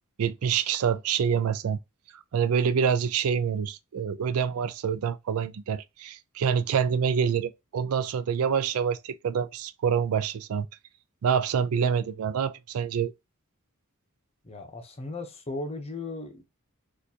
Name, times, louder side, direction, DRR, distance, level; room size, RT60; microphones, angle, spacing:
voice 1, 0.2-1.8 2.3-10.7 11.2-13.1, right 7 dB, 75° right, 0.4 m, -26 dB
voice 2, 14.4-16.4, left 2 dB, 30° left, 0.8 m, -36 dB
4.3 x 2.5 x 2.8 m
head